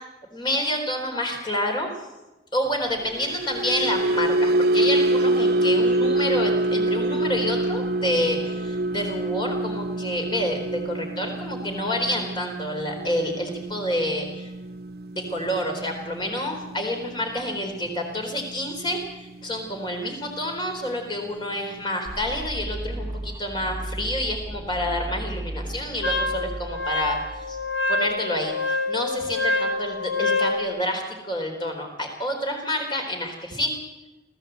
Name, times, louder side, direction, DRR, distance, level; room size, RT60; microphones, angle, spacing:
voice 1, 0.3-1.9 2.5-14.5 15.1-27.6 27.9-33.8, left 1 dB, 25° left, 3 dB, 4.0 m, -28 dB
sound 1, 3.0-19.4 19.8-20.1 20.4-20.6, right 2 dB, 55° right, 0.7 m, -26 dB
sound 2, 22.1-28.0, right 1 dB, 15° right, 1.5 m, -35 dB
Wind instrument woodwind instrument, 26.0-30.6, left 2 dB, 85° left, 2.5 m, -26 dB
24.0 x 15.0 x 8.1 m, 1.1 s
head